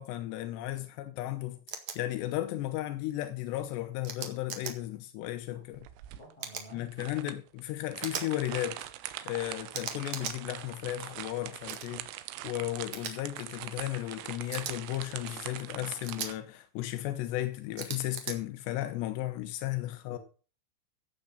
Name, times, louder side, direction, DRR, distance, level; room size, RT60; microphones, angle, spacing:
voice 1, 0.0-5.9 6.7-8.8 9.3-12.1 12.4-20.2, left 15 dB, 85° left, 2.5 m, -35 dB
sound 1, 1.7-2.0 4.0-4.7 6.4-6.7 8.0-8.3 9.7-10.4 11.7-11.9 12.9-13.1 14.5-14.7 16.0-16.3 17.8-18.4, right 7 dB, 65° right, 1.8 m, -38 dB
sound 2, 5.7-16.4, right 14 dB, 85° right, 3.5 m, -42 dB
voice 2, 6.2-6.9 20.1-20.2, right 2 dB, 25° left, 7.7 m, -51 dB
14.5 x 8.3 x 5.5 m
omnidirectional pair, 6.0 m